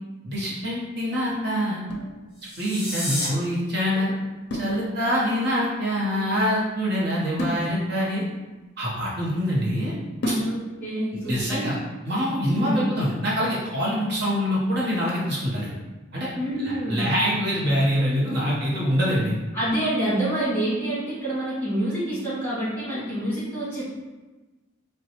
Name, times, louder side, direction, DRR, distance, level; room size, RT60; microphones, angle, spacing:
voice 1, 0.2-1.8 2.6-4.1 4.5-8.2 8.8-9.9 10.3-10.4 11.1-11.8 12.0-15.7 16.1-16.3 16.6-19.3, equal, 60° right, -6 dB, 0.8 m, -25 dB
sound 1, 1.8-2.9 4.5-5.4 7.4-9.4 10.2-11.0, equal, 60° left, 0.5 m, -33 dB
sound 2, 2.3-3.3, left 1 dB, 5° right, 1.4 m, -30 dB
voice 2, 10.4-11.6 12.6-12.9 16.3-17.1 19.5-23.9, right 1 dB, 10° left, -10 dB, 1.5 m, -27 dB
3.9 x 2.2 x 2.8 m, 1.2 s
head